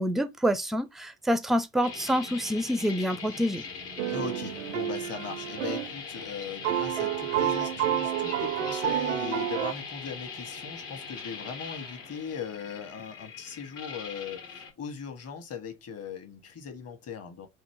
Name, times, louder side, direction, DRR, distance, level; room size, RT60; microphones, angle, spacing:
voice 1, 0.0-3.6, equal, ahead, 0.4 m, -27 dB
sound 1, 1.8-14.7, left 5 dB, 70° left, 1.5 m, -41 dB
sound 2, 4.0-5.9 6.2-6.3 6.6-9.7, right 11 dB, 75° right, 0.5 m, -29 dB
voice 2, 4.1-17.5, left 6 dB, 40° left, 1.3 m, -39 dB
4.1 x 2.5 x 3.5 m
figure-of-eight pair, 60°, 38 cm